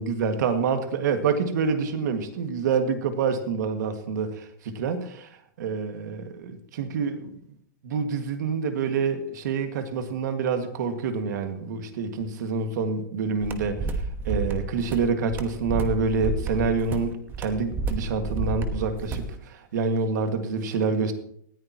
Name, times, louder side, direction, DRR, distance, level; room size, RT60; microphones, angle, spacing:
voice 1, 0.0-5.3 5.6-7.3 7.8-13.8 14.2-21.1, right 5 dB, 65° right, 7 dB, 2.0 m, -27 dB
sound 1, 13.4-19.3, right 3 dB, 20° right, 1.2 m, -30 dB
19.0 x 14.0 x 3.0 m, 0.71 s
supercardioid pair, 155°, 10 cm